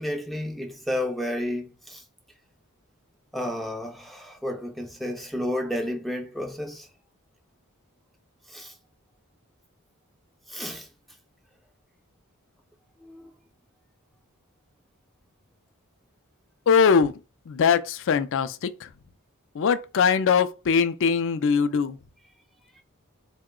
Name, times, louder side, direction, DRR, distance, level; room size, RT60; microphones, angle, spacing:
voice 1, 0.0-2.0 3.3-6.9 8.5-8.8 10.5-10.9 13.0-13.3 22.7-22.8, left 1 dB, ahead, 0.4 m, -31 dB
voice 2, 16.7-17.2 17.5-18.9 19.6-22.0, left 6 dB, 60° left, 0.4 m, -21 dB
3.7 x 2.2 x 3.6 m
head